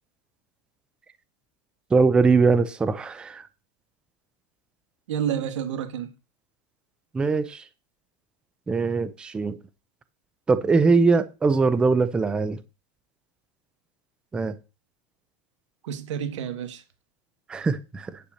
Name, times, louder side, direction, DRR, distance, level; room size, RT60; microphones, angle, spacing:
voice 1, 1.9-3.5 7.1-7.6 8.7-9.6 10.5-12.6 14.3-14.6 17.5-18.2, right 4 dB, 5° right, 0.4 m, -21 dB
voice 2, 5.1-6.1 15.8-16.8, right 9 dB, 80° right, 1.7 m, -29 dB
10.0 x 4.2 x 6.4 m
supercardioid pair, 170°, 15 cm